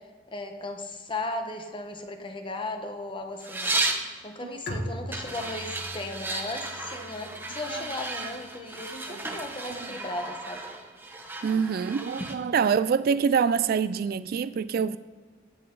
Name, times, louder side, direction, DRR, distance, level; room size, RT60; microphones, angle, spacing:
voice 1, 0.3-3.7 4.2-10.6 13.1-13.2, left 2 dB, 25° left, 1.1 m, -36 dB
sound 1, 3.4-4.1 5.1-12.4, right 2 dB, 10° right, 0.9 m, -34 dB
Bowed string instrument, 4.7-8.2, equal, 55° left, 1.4 m, -40 dB
voice 2, 9.1-9.4 9.7-9.9 11.4-15.0, right 6 dB, 50° right, 0.3 m, -26 dB
16.0 x 7.9 x 3.9 m
head